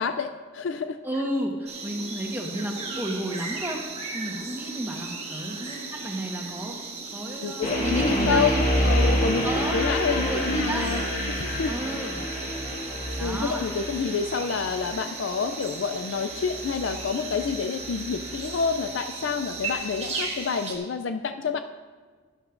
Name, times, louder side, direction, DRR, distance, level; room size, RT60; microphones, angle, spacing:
voice 1, 0.0-1.0 7.4-9.5 9.7-11.0 11.3-11.7 13.2-21.6, left 5 dB, 60° left, 8 dB, 0.4 m, -28 dB
voice 2, 1.0-3.8 4.1-6.8 7.1-8.9 9.4-11.1 11.7-12.2 13.1-13.7, right 1 dB, 10° right, 0 dB, 1.2 m, -32 dB
sound 1, 1.7-20.8, right 4 dB, 30° right, 1.4 m, -37 dB
sound 2, 7.6-18.7, equal, 35° left, 2.8 m, -28 dB
13.0 x 11.5 x 2.5 m, 1.5 s
head